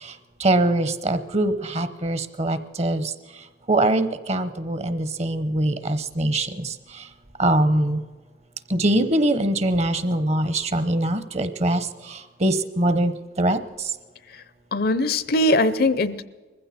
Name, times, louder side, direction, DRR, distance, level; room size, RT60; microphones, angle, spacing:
voice 1, 0.4-3.0 3.7-6.5 7.4-8.0 8.7-11.8 12.4-13.1 13.4-13.6, right 1 dB, 40° right, 12 dB, 0.9 m, -22 dB
voice 2, 14.7-16.2, left 1 dB, 60° left, 15 dB, 0.7 m, -21 dB
20.5 x 15.5 x 4.3 m, 1.4 s
head